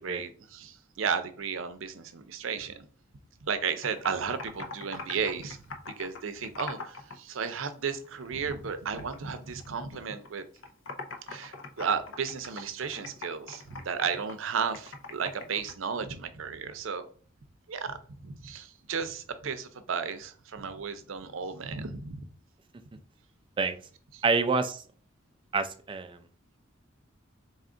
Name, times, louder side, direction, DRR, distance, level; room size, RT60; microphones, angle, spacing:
voice 1, 0.0-2.9 3.4-10.4 11.3-17.1 17.7-22.2 24.1-24.2, right 6 dB, 80° right, 10 dB, 0.5 m, -34 dB
Computer keyboard, 3.6-7.2 7.4-8.7 9.0-10.3 10.6-15.7, left 3 dB, 75° left, 0.6 m, -42 dB
voice 2, 24.2-24.8 25.5-26.2, right 4 dB, 25° right, 9 dB, 0.3 m, -27 dB
4.1 x 2.4 x 3.7 m, 0.42 s
head